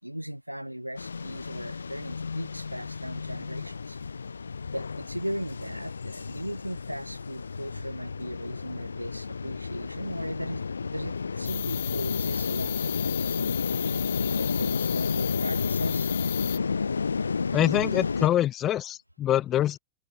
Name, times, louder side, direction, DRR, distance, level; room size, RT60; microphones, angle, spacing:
voice 1, 0.0-4.0 4.7-13.6 14.3-16.1, equal, 90° right, 6.5 m, -37 dB
sound 1, 1.0-18.3, left 5 dB, 75° left, 1.7 m, -31 dB
sound 2, 11.4-16.6, left 12 dB, 60° left, 3.9 m, -34 dB
voice 2, 17.5-19.8, left 12 dB, 30° left, 1.5 m, -25 dB
figure-of-eight pair, 90°, 0 cm